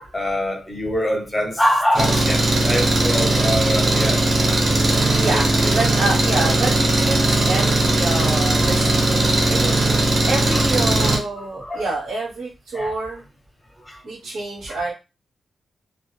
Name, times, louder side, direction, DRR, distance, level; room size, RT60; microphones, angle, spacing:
voice 1, 0.1-4.2 5.1-5.8 8.6-8.7 10.5-10.7 11.4-11.9 12.7-13.0 13.9-14.0 14.7-14.8, equal, 5° left, 0.6 m, -24 dB
Engine, 2.0-11.2, right 2 dB, 35° right, 0.6 m, -18 dB
voice 2, 5.1-9.7 10.2-13.2 14.0-14.9, right 2 dB, 90° right, 0.9 m, -27 dB
2.2 x 2.0 x 3.0 m
wide cardioid pair, 155°, 0 cm